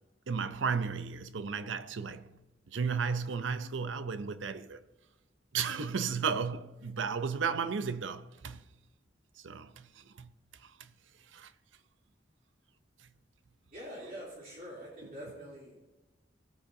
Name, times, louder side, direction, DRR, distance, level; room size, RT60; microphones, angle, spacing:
voice 1, 0.3-2.4 2.7-4.8 5.5-8.7 9.4-10.3 10.6-10.9 11.3-11.5, right 5 dB, 90° right, 0.6 m, -34 dB
voice 2, 13.7-15.8, equal, 50° right, 3.1 m, -45 dB
17.5 x 8.7 x 2.7 m
head